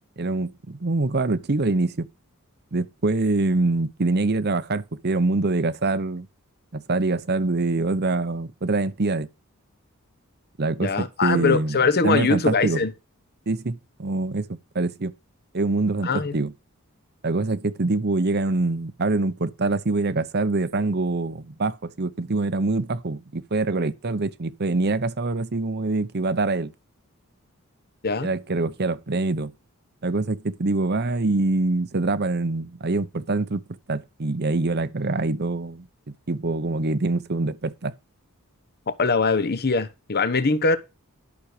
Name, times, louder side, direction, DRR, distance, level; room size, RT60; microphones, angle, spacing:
voice 1, 0.2-2.1 2.7-6.3 6.7-9.3 10.6-11.8 12.0-12.8 13.5-15.1 15.5-16.5 17.2-26.7 28.2-29.5 30.0-33.6 33.9-35.9 36.3-37.9, right 3 dB, 45° right, 0.8 m, -24 dB
voice 2, 10.8-12.9 16.0-16.3 28.0-28.3 38.9-40.8, left 4 dB, 45° left, 1.0 m, -22 dB
12.0 x 6.3 x 4.9 m
head